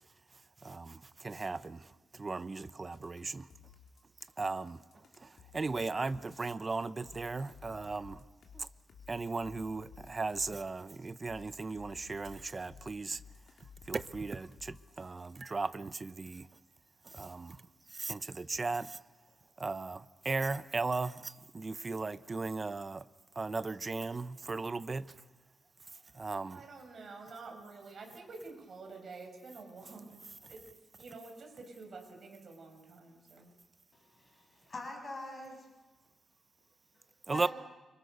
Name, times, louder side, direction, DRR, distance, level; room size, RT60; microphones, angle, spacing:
voice 1, 0.6-3.5 4.4-4.8 5.2-8.2 8.5-8.7 9.1-13.2 13.9-16.5 17.0-17.6 17.9-19.0 19.6-23.0 23.4-25.2 26.1-26.7 37.3-37.5, right 3 dB, 25° right, 0.8 m, -37 dB
sound 1, 2.9-6.5 7.0-10.7 11.2-15.0, left 6 dB, 55° left, 4.6 m, -55 dB
voice 2, 26.4-30.2 30.5-30.6 31.0-33.5, right 3 dB, 40° right, 7.0 m, -49 dB
voice 3, 33.9-35.7 36.9-37.5, left 2 dB, 25° left, 7.5 m, -45 dB
30.0 x 25.5 x 6.9 m
wide cardioid pair, 155°, 0 cm